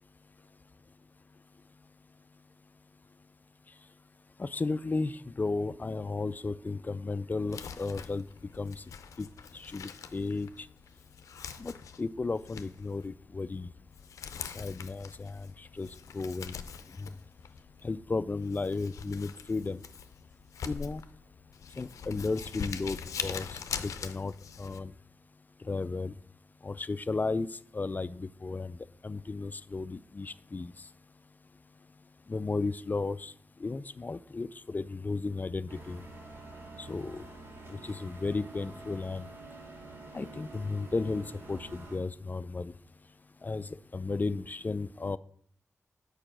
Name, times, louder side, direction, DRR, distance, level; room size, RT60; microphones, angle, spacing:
voice 1, 4.4-8.3 8.6-8.8 9.2-9.3 9.5-10.5 11.6-13.7 14.5-15.5 15.8-15.9 16.1-16.6 17.0-17.1 17.8-19.8 20.7-21.0 21.8-24.3 24.6-24.9 25.7-26.1 26.6-27.5 27.7-28.8 29.0-30.7 32.3-33.3 33.6-36.0 36.8-37.2 37.7-39.3 40.1-42.7 43.4-45.2, left 3 dB, 35° left, 16 dB, 0.4 m, -34 dB
Crumpling crinkling, 7.4-24.8, left 7 dB, 85° left, 0.5 m, -43 dB
sound 1, 35.7-42.0, right 2 dB, 50° right, 2.7 m, -48 dB
6.8 x 4.8 x 6.1 m, 0.62 s
cardioid pair, 55°, 5 cm